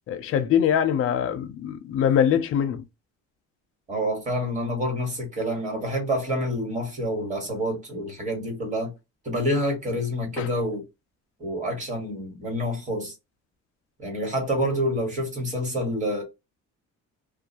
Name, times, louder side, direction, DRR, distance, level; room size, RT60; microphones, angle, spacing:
voice 1, 0.1-2.8 10.4-10.5, left 9 dB, 45° left, 0.4 m, -23 dB
voice 2, 3.9-8.9 9.2-10.8 11.4-13.1 14.0-16.2, equal, 25° right, 1.2 m, -27 dB
2.3 x 2.2 x 2.7 m
cardioid pair, 170°, 31 cm